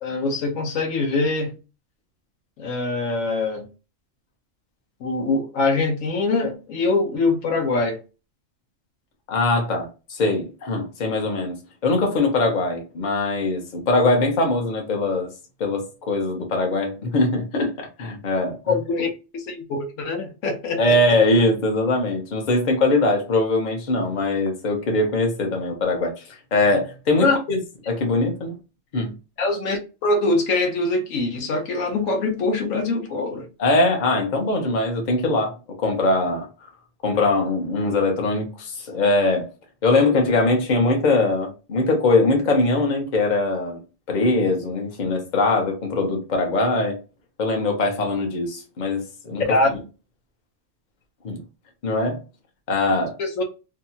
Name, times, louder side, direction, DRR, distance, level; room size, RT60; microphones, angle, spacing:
voice 1, 0.0-1.5 2.6-3.7 5.0-8.0 18.7-21.0 27.2-27.4 29.4-33.5 49.5-49.7 53.2-53.4, left 3 dB, 80° left, 1.1 m, -23 dB
voice 2, 9.3-11.6 11.8-15.3 15.6-18.7 20.8-26.1 26.5-27.6 27.9-28.6 28.9-29.1 33.6-35.5 35.8-36.7 37.0-39.5 39.8-43.8 44.1-47.0 47.4-49.4 51.2-51.4 51.8-52.2 52.7-53.1, left 2 dB, 45° left, 0.8 m, -21 dB
2.8 x 2.2 x 2.6 m
omnidirectional pair, 1.4 m